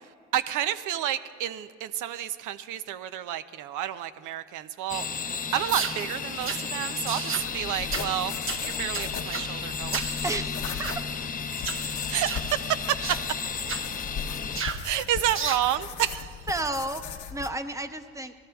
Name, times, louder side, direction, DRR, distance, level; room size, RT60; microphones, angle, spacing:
voice 1, 0.3-5.0 5.5-10.3 12.1-13.2 14.8-16.4, right 11 dB, 85° right, 12 dB, 0.5 m, -30 dB
sound 1, 4.9-14.6, left 5 dB, 30° left, 0.6 m, -33 dB
sound 2, 5.7-6.0 6.5-6.6 7.1-7.5 7.9-8.1 8.5-8.6 8.9-9.5 9.9-10.1 10.6-11.0 11.6-11.8 12.3-12.5 13.0-13.2 13.7-13.9 14.6-14.8 15.3-15.7, right 5 dB, 45° right, 0.9 m, -32 dB
sound 3, 7.4-17.5, left 7 dB, 80° left, 0.9 m, -39 dB
voice 2, 10.2-10.9 16.5-18.3, right 2 dB, 10° right, 7 dB, 0.8 m, -32 dB
28.0 x 18.0 x 2.3 m, 2.1 s
cardioid pair, 90°, 30 cm